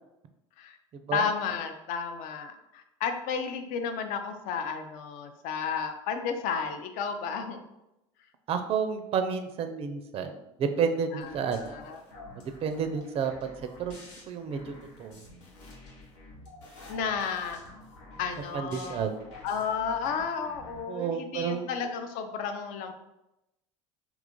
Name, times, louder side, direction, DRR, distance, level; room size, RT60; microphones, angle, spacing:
voice 1, 1.1-7.6 11.1-12.0 16.9-17.6 18.2-19.0 19.4-22.9, left 6 dB, 60° left, 7 dB, 0.4 m, -32 dB
voice 2, 8.5-11.8 12.6-14.0 14.3-14.7 15.0-15.2 18.5-19.2 20.9-21.7, right 6 dB, 40° right, 7 dB, 0.4 m, -30 dB
sound 1, 11.2-20.8, left 2 dB, 80° left, 0.9 m, -49 dB
2.9 x 2.4 x 3.6 m, 0.92 s
hypercardioid pair, 75°, 16 cm